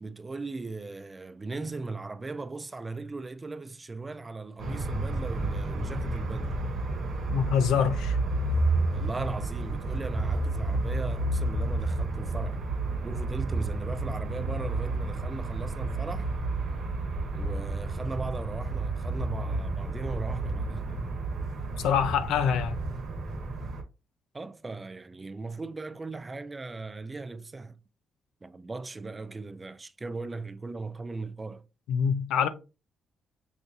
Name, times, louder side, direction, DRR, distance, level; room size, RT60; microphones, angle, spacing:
voice 1, 0.0-6.6 8.9-12.6 13.0-16.3 17.3-20.9 24.3-27.8 28.4-31.6, right 3 dB, 25° right, 0.4 m, -38 dB
sound 1, 4.6-23.8, right 2 dB, 65° right, 1.1 m, -31 dB
voice 2, 7.3-8.2 21.8-22.8 31.9-32.5, left 7 dB, 85° left, 0.5 m, -25 dB
5.8 x 2.6 x 2.5 m
cardioid pair, 90°, 0 cm